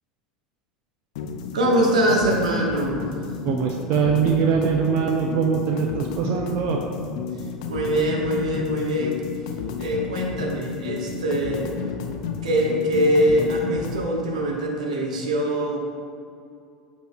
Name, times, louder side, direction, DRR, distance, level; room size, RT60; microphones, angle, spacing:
sound 1, 1.2-14.1, left 5 dB, 65° left, 0.6 m, -32 dB
voice 1, 1.5-3.0 7.7-9.2 9.8-11.7 12.4-15.8, right 1 dB, 75° right, -1 dB, 1.1 m, -23 dB
voice 2, 3.4-6.8, right 6 dB, 55° right, 3 dB, 0.6 m, -22 dB
13.5 x 5.0 x 2.2 m, 2.4 s
figure-of-eight pair, 75°, 4 cm